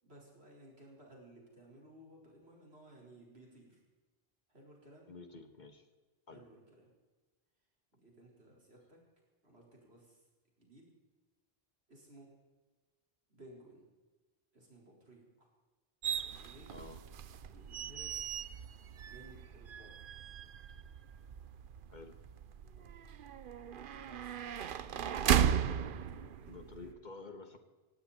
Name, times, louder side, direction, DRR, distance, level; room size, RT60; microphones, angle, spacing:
voice 1, 0.0-3.8 4.5-5.1 6.3-6.9 7.9-9.0 9.4-10.3 10.6-10.9 11.9-12.3 13.3-13.9 14.5-15.5 16.2-16.9 17.5-18.3 19.0-20.2 22.8-23.0 23.5-27.0, right 1 dB, 85° right, -2 dB, 5.1 m, -58 dB
voice 2, 5.1-5.9 6.3-6.4 16.7-17.0 21.9-22.1 26.5-27.6, left 3 dB, 45° left, 7 dB, 1.6 m, -50 dB
sound 1, 16.0-26.9, right 8 dB, 60° right, 0.8 m, -36 dB
18.0 x 17.0 x 4.3 m, 1.2 s
omnidirectional pair, 1.0 m